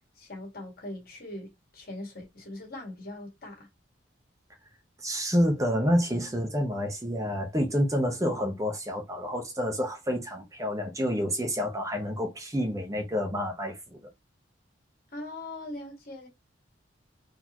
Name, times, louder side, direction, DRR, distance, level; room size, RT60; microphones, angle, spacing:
voice 1, 0.1-3.7 8.2-8.4 15.1-16.3, left 1 dB, 50° left, 1.8 m, -41 dB
voice 2, 5.0-14.0, equal, 15° right, 0.7 m, -28 dB
4.0 x 2.8 x 2.9 m
head